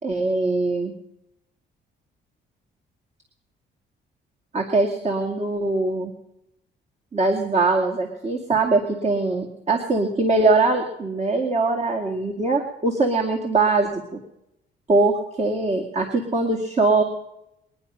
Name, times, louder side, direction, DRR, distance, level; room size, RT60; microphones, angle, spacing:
voice 1, 0.0-0.9 4.5-6.1 7.1-14.2 14.9-17.0, right 3 dB, 35° right, 3 dB, 2.3 m, -22 dB
22.5 x 10.0 x 5.6 m, 0.83 s
cardioid pair, 90°, 20 cm